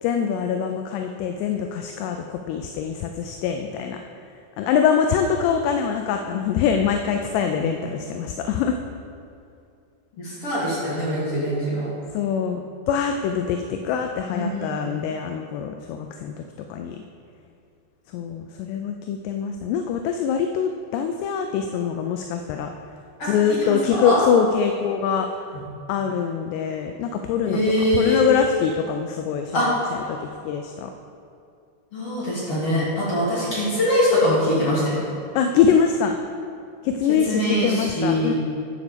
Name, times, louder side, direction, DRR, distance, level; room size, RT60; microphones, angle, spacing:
voice 1, 0.0-4.0 4.6-8.8 12.1-12.6 12.9-16.3 16.7-17.0 18.1-22.7 23.2-25.3 25.9-27.6 27.9-29.6 30.1-30.9 35.4-36.2 36.8-38.3, left 7 dB, 80° left, 5 dB, 2.6 m, -23 dB
voice 2, 10.2-11.9 14.3-15.0 23.2-24.2 27.4-28.2 29.5-29.9 31.9-35.0 37.1-38.3, equal, 40° left, -8 dB, 2.8 m, -23 dB
11.0 x 5.4 x 6.8 m, 2.4 s
omnidirectional pair, 5.1 m